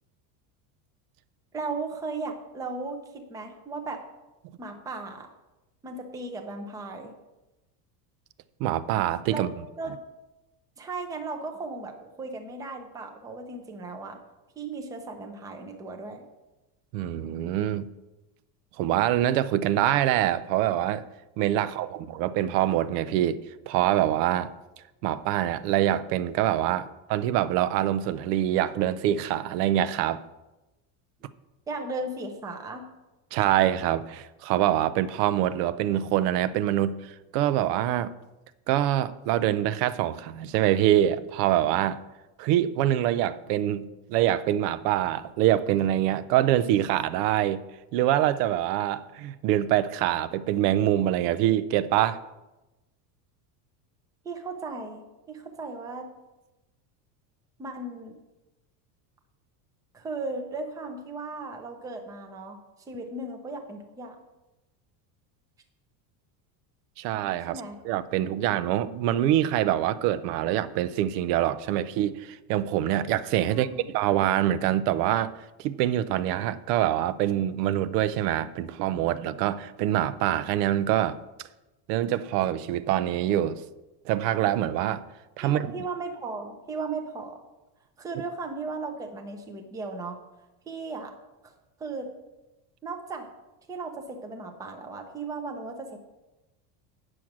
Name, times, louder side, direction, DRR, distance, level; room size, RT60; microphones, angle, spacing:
voice 1, 1.5-4.1 4.6-5.3 5.8-7.1 9.3-9.5 9.8-10.0 10.8-14.2 14.6-16.2 31.7-32.9 54.2-56.1 57.6-58.2 59.9-62.6 62.9-64.2 67.5-67.8 73.5-73.9 85.4-87.4 88.0-90.2 90.7-91.1 91.4-91.5 91.8-92.1 92.8-93.3 93.7-96.0, right 3 dB, 5° right, 0.5 m, -36 dB
voice 2, 8.6-9.5 16.9-17.9 18.8-21.0 21.4-23.4 23.7-24.5 25.0-30.2 33.3-38.1 38.7-42.0 42.4-47.6 47.9-52.2 67.0-75.3 75.6-81.2 81.9-83.6 84.1-85.0 85.4-85.7, right 12 dB, 70° right, 0.6 m, -25 dB
8.9 x 6.3 x 5.9 m
cardioid pair, 160°, 49 cm